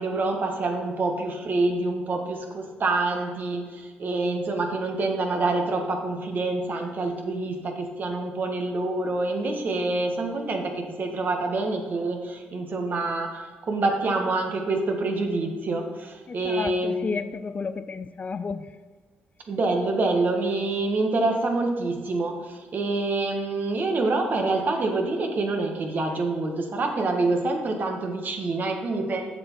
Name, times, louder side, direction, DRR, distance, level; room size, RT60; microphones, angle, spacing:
voice 1, 0.0-17.1 19.5-29.2, right 2 dB, 50° right, 1.6 m, -26 dB
voice 2, 16.3-18.7, left 4 dB, 35° left, 0.4 m, -32 dB
7.6 x 7.0 x 4.7 m
cardioid pair, 75°, 4 cm